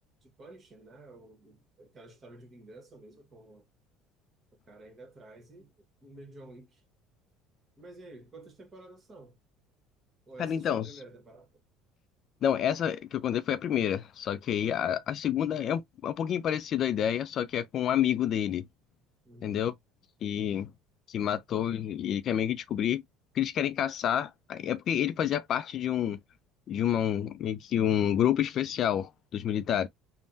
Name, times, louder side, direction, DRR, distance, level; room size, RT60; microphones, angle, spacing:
voice 1, 0.2-3.7 4.7-6.8 7.8-9.4 10.3-11.6 14.6-15.0 19.2-19.6, right 2 dB, 30° right, 1.3 m, -51 dB
voice 2, 10.4-10.9 12.4-18.7 19.4-19.7 20.2-20.7 21.1-23.0 23.3-26.2 26.7-29.9, left 10 dB, 50° left, 0.3 m, -29 dB
3.4 x 2.1 x 2.6 m
supercardioid pair, 105°, 0 cm